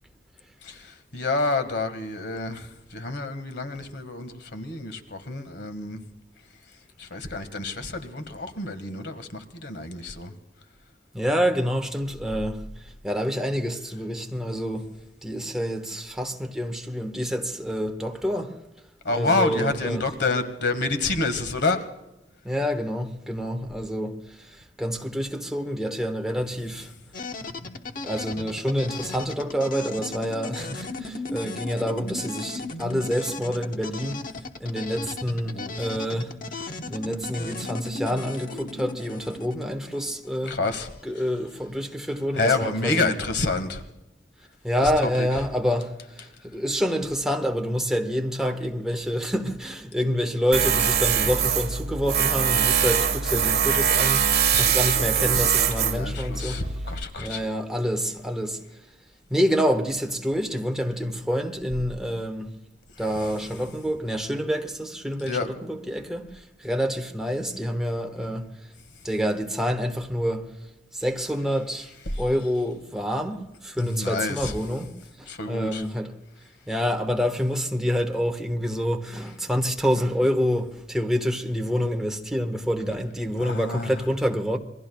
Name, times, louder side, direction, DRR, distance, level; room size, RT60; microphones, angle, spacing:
voice 1, 0.6-6.0 7.0-10.3 19.0-21.8 35.4-35.7 40.5-40.9 42.3-43.8 45.0-45.3 54.2-57.4 65.2-65.5 72.1-72.2 73.8-74.5 75.3-75.8 83.4-84.0, left 3 dB, 75° left, 1.7 m, -28 dB
voice 2, 11.1-12.6 13.0-14.9 15.2-18.6 19.1-20.0 22.4-26.9 28.0-34.2 34.6-36.3 36.9-40.6 41.0-43.1 44.6-56.6 57.2-58.6 59.3-62.5 63.0-68.5 69.0-70.5 70.9-71.9 72.2-74.9 75.2-76.1 76.7-84.6, equal, 5° right, 1.4 m, -27 dB
sound 1, 27.1-41.0, left 2 dB, 50° left, 1.0 m, -36 dB
Tools, 50.5-57.0, right 8 dB, 60° right, 1.5 m, -23 dB
27.5 x 21.5 x 2.3 m
head